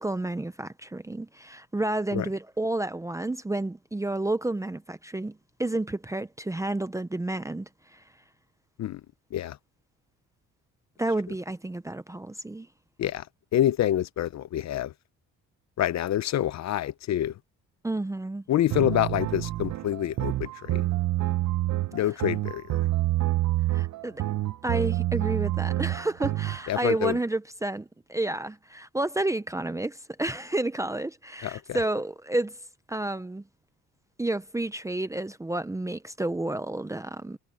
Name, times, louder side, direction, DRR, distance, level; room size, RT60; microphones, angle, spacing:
voice 1, 0.0-8.0 11.0-12.7 17.8-18.4 23.7-24.2 24.6-32.6 32.9-33.4 34.2-37.4, right 2 dB, 10° right, 0.8 m, -30 dB
voice 2, 13.5-14.9 15.8-17.3 18.5-20.8 21.9-22.8 26.7-27.2 31.4-31.8, left 12 dB, 55° left, 0.8 m, -27 dB
sound 1, 18.7-26.6, right 15 dB, 55° right, 1.0 m, -27 dB
cardioid pair, 110°, 33 cm